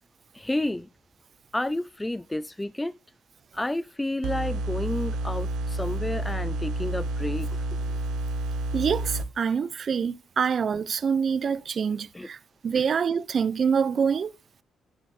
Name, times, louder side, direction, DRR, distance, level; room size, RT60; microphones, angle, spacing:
voice 1, 0.3-0.9 1.5-2.9 3.5-7.8 12.1-12.3, left 1 dB, 10° left, 0.5 m, -30 dB
sound 1, 4.2-9.2, right 2 dB, 85° right, 1.1 m, -30 dB
voice 2, 8.7-12.4 12.6-14.3, right 6 dB, 50° right, 0.5 m, -25 dB
9.4 x 6.7 x 4.2 m
cardioid pair, 90°, 0 cm